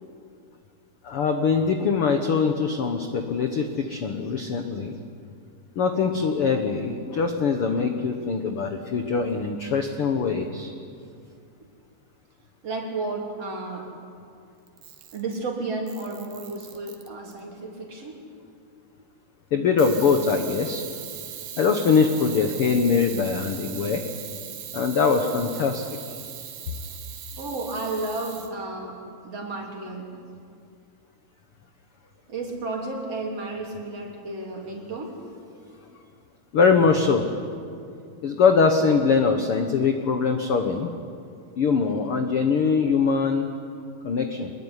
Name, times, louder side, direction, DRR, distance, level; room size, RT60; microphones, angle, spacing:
voice 1, 1.0-4.9 5.7-10.7 19.5-20.8 21.6-24.0 24.7-25.8 36.5-37.3 38.2-40.9 41.6-43.5 44.0-44.5, left 5 dB, 75° left, 5 dB, 1.2 m, -22 dB
voice 2, 12.6-13.9 15.1-18.1 27.4-30.1 32.3-35.2, right 2 dB, 40° right, 0 dB, 4.4 m, -32 dB
Camera, 14.7-15.4 15.9-17.4 19.8-28.5, right 10 dB, 75° right, 3.3 m, -39 dB
25.0 x 21.5 x 9.9 m, 2.4 s
omnidirectional pair, 4.5 m